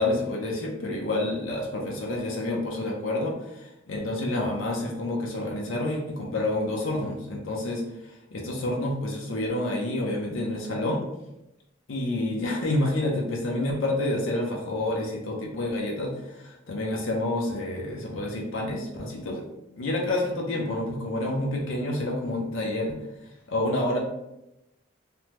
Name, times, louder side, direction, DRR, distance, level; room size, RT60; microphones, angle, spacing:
voice 1, 0.0-7.8 8.3-11.0 11.9-19.5 19.8-23.0 23.5-24.0, left 1 dB, 70° left, -1 dB, 0.5 m, -28 dB
3.3 x 2.1 x 2.8 m, 0.90 s
head